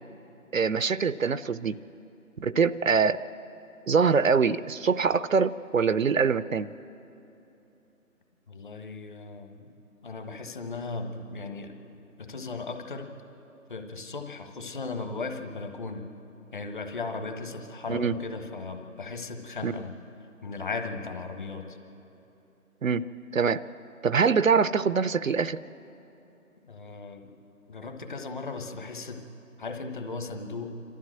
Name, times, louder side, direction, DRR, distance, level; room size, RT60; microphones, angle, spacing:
voice 1, 0.5-1.8 2.4-3.2 3.9-6.7 17.9-18.2 19.6-19.7 22.8-23.0 23.3-23.6 24.0-25.6, right 5 dB, 65° right, 15 dB, 0.6 m, -24 dB
voice 2, 8.5-9.7 10.0-11.7 12.2-13.1 13.7-16.1 16.5-19.9 20.4-21.8 26.7-27.3 27.7-29.2 29.6-30.8, left 3 dB, 35° left, 5 dB, 1.4 m, -37 dB
27.0 x 13.0 x 7.7 m, 3.0 s
figure-of-eight pair, 160°, 44 cm